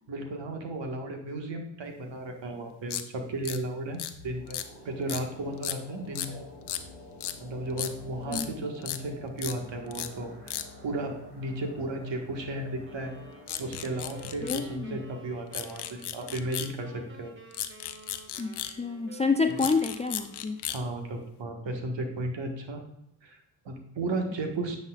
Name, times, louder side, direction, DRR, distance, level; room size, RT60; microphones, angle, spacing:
voice 1, 0.1-4.6 4.8-6.5 7.4-10.6 10.8-13.1 13.6-17.3 20.7-22.8 23.2-24.8, right 2 dB, 60° right, 3 dB, 1.7 m, -34 dB
sound 1, 2.9-3.0 3.4-3.6 4.0-4.1 4.5-4.7 5.1-5.2 5.6-5.8 6.1-6.3 6.7-6.8 7.2-7.4 7.8-7.9 8.3-8.5 8.8-9.0 9.4-9.5 9.9-10.1 10.5-10.7 13.5-14.7 15.5-16.7 17.5-18.7 19.5-20.8, left 11 dB, 55° left, 0.7 m, -35 dB
sound 2, 4.1-17.2 17.5-17.6, left 1 dB, 85° right, 2.1 m, -49 dB
sound 3, 12.8-20.8, right 2 dB, 25° right, 1.4 m, -51 dB
voice 2, 14.4-15.0 18.4-18.5 18.8-20.6, left 4 dB, 15° left, 7 dB, 0.3 m, -28 dB
9.5 x 5.8 x 2.4 m, 0.81 s
supercardioid pair, 55°, 50 cm